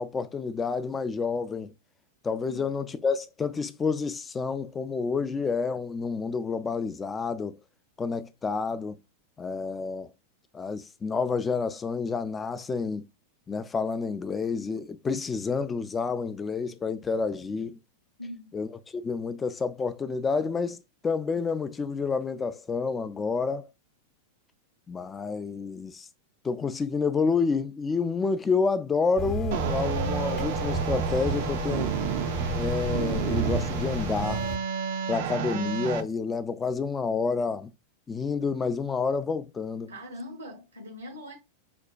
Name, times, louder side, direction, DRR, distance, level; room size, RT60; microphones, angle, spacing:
voice 1, 0.0-1.7 2.2-7.6 8.0-9.0 9.4-10.1 10.5-13.0 13.5-17.8 18.5-23.7 24.9-26.1 26.4-31.9 32.5-34.4 35.1-37.7 38.1-39.9, left 5 dB, 15° left, 0.3 m, -29 dB
voice 2, 18.2-18.5 39.9-41.3, left 1 dB, 80° right, 0.7 m, -41 dB
sound 1, 29.2-34.6, right 2 dB, 35° left, 0.8 m, -31 dB
sound 2, 29.5-36.0, right 7 dB, 50° right, 0.4 m, -31 dB
5.1 x 2.1 x 2.3 m
figure-of-eight pair, 90°, 0 cm